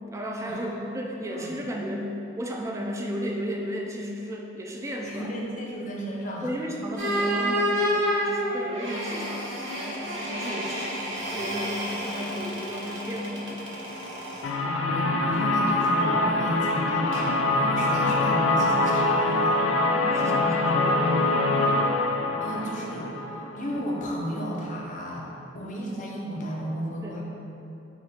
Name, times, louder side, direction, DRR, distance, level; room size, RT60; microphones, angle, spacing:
voice 1, 0.1-5.3 6.4-13.6 19.9-21.3 27.0-27.2, equal, 15° right, 0 dB, 0.3 m, -34 dB
voice 2, 5.0-6.5 14.9-19.6 20.2-21.1 22.4-25.3 25.5-27.2, equal, 45° left, -2 dB, 0.6 m, -33 dB
sound 1, 7.0-14.5 17.1-17.3, equal, 90° right, 1.0 m, -30 dB
sound 2, 14.4-24.1, left 2 dB, 85° left, 0.4 m, -24 dB
4.4 x 2.4 x 4.1 m, 2.9 s
head